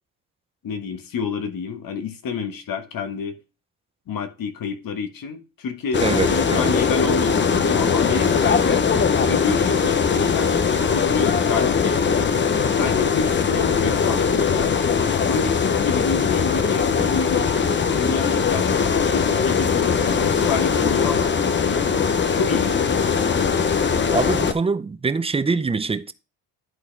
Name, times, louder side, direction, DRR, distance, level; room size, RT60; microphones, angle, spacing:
voice 1, 0.6-3.4 4.1-8.8 9.3-12.3 12.8-14.7 15.2-17.5 17.9-21.9 22.3-23.0, left 5 dB, 55° left, 1.3 m, -29 dB
sound 1, 5.9-24.5, left 6 dB, 30° left, 0.7 m, -20 dB
voice 2, 6.0-6.7 24.1-26.1, right 4 dB, 15° right, 0.5 m, -24 dB
11.0 x 4.1 x 3.3 m
cardioid pair, 85°, 41 cm